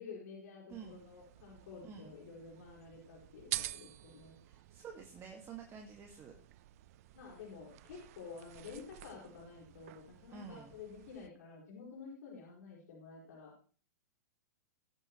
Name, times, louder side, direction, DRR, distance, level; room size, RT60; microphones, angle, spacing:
voice 1, 0.0-4.4 7.1-13.5, left 5 dB, 70° left, -3 dB, 5.1 m, -50 dB
voice 2, 0.7-1.0 1.8-2.2 4.4-6.3 10.3-10.7, right 6 dB, 25° right, 2 dB, 1.9 m, -49 dB
sound 1, 0.7-11.3, right 16 dB, 55° right, 0.7 m, -49 dB
19.5 x 9.0 x 3.1 m, 0.41 s
hypercardioid pair, 120°, 10 cm